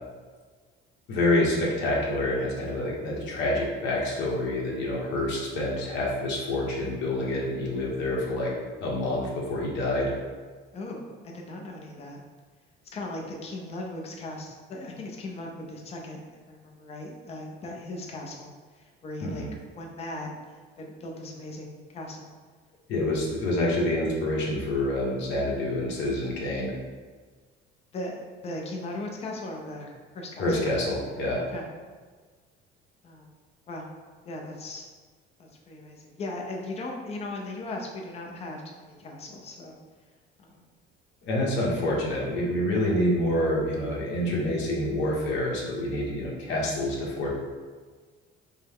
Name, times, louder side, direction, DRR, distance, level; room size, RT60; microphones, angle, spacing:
voice 1, 1.1-8.5 8.8-10.1 19.2-19.5 22.9-26.7 30.4-31.4 41.2-47.3, left 1 dB, 60° left, -3 dB, 1.1 m, -27 dB
voice 2, 10.7-12.2 12.9-18.5 18.8-19.4 19.7-20.3 20.8-22.3 27.9-30.5 31.5-31.7 33.0-33.3 33.7-33.9 34.2-34.8 35.4-39.8 40.4-40.7, left 2 dB, 30° left, 0 dB, 0.6 m, -38 dB
5.3 x 2.2 x 3.6 m, 1.5 s
cardioid pair, 160°, 21 cm